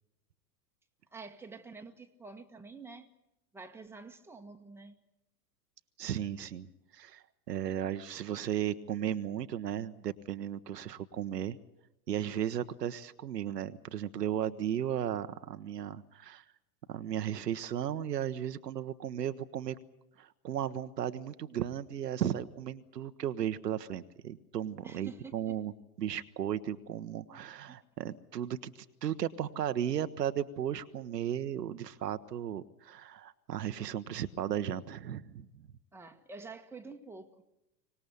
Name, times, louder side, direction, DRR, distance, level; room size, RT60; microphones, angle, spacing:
voice 1, 1.1-3.1 3.5-5.0 24.8-25.5 27.7-27.8 35.9-37.4, right 4 dB, 5° right, 1.5 m, -48 dB
voice 2, 6.0-11.6 12.1-16.4 16.9-19.8 20.2-25.7 26.0-35.5, right 10 dB, 70° right, 1.1 m, -35 dB
24.5 x 19.0 x 8.1 m
figure-of-eight pair, 90°, 50 cm